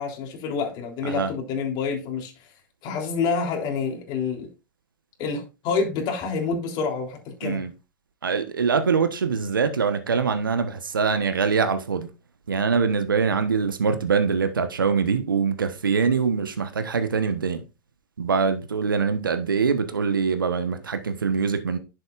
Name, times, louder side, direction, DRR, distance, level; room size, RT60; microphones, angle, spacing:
voice 1, 0.0-2.5 2.8-4.5 5.2-7.6, left 5 dB, 45° left, 3.5 m, -28 dB
voice 2, 8.2-12.1 12.5-17.6 18.2-21.8, right 5 dB, 85° right, 1.2 m, -23 dB
11.0 x 7.7 x 2.5 m
hypercardioid pair, 100°, 11 cm